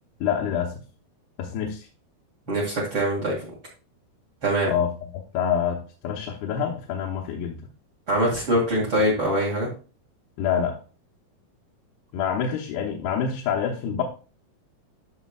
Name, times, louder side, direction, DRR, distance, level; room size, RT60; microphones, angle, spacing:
voice 1, 0.2-0.7 1.4-1.9 4.7-4.9 5.3-7.6 10.4-10.8 12.1-14.0, left 8 dB, 85° left, -2 dB, 3.0 m, -26 dB
voice 2, 2.5-3.4 4.4-4.7 8.1-9.7, right 1 dB, 40° right, -5 dB, 2.4 m, -23 dB
12.0 x 6.3 x 2.4 m, 0.35 s
omnidirectional pair, 4.5 m